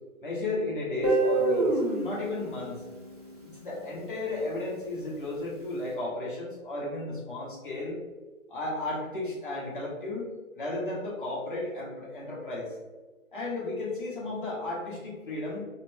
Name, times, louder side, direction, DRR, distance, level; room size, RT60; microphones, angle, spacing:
voice 1, 0.2-2.8 3.4-8.0 8.5-12.7 13.3-15.6, left 2 dB, 35° left, -4 dB, 1.0 m, -34 dB
Guitar, 1.0-4.0, right 2 dB, 30° right, 0.5 m, -28 dB
4.0 x 2.0 x 3.5 m, 1.2 s
figure-of-eight pair, 140°, 43 cm